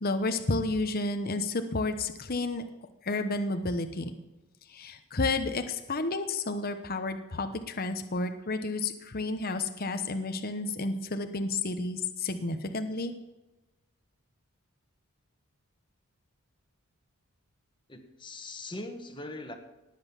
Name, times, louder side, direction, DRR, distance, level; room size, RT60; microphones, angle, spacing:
voice 1, 0.0-2.6 3.0-4.1 4.7-13.1, left 3 dB, 45° left, 8 dB, 1.0 m, -31 dB
voice 2, 17.9-19.6, left 2 dB, 20° left, 6 dB, 1.6 m, -41 dB
19.0 x 7.9 x 7.1 m, 1.0 s
head